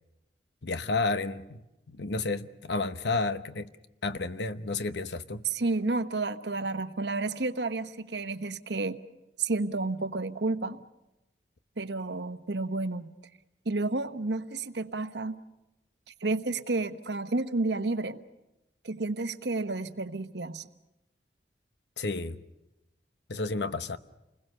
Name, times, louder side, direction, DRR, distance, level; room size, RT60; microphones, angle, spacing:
voice 1, 0.6-1.6 1.9-3.7 4.0-5.4 22.0-22.4 23.3-24.0, left 3 dB, 80° left, 1.0 m, -31 dB
voice 2, 5.4-9.0 9.4-10.8 11.8-13.1 13.6-15.4 16.2-18.2 18.8-20.7, right 3 dB, 80° right, 1.1 m, -31 dB
29.0 x 21.0 x 6.6 m
head